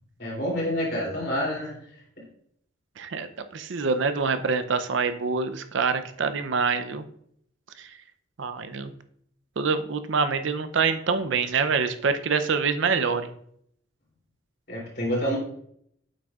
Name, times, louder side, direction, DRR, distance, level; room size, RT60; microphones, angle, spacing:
voice 1, 0.2-1.8 14.7-15.4, equal, 55° left, -4 dB, 3.0 m, -27 dB
voice 2, 3.0-3.3 3.5-7.0 7.8-7.9 8.4-8.9 9.6-13.3, right 5 dB, 70° right, 10 dB, 0.5 m, -25 dB
8.1 x 6.1 x 2.4 m, 0.68 s
head